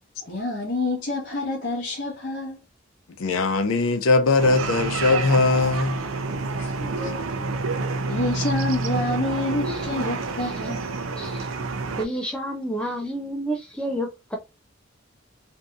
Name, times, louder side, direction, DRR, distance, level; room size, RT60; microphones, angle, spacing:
voice 1, 0.2-2.6 6.5-6.7 7.0-7.3 7.8-10.9, left 2 dB, 50° left, 0.8 m, -28 dB
voice 2, 3.2-6.0, left 3 dB, 90° left, 0.6 m, -20 dB
sound 1, 4.4-12.1, right 3 dB, 80° right, 0.5 m, -28 dB
voice 3, 11.2-11.5 12.0-14.4, right 1 dB, 5° left, 0.3 m, -30 dB
2.7 x 2.6 x 2.3 m
head